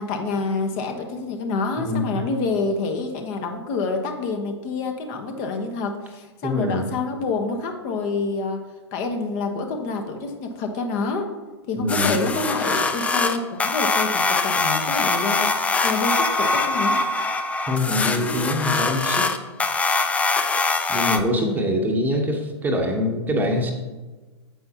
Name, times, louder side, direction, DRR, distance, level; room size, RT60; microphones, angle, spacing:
voice 1, 0.0-8.6 8.9-11.3 11.7-15.5 15.8-17.0 21.3-21.7, left 3 dB, 40° left, 4 dB, 1.1 m, -27 dB
voice 2, 1.8-2.2 6.4-6.9 11.8-12.2 17.7-19.3 20.9-23.7, left 1 dB, 10° right, 2 dB, 1.1 m, -24 dB
sound 1, 11.9-21.2, left 3 dB, 10° left, 0.4 m, -23 dB
9.3 x 7.9 x 2.9 m, 1.3 s
figure-of-eight pair, 110°, 15 cm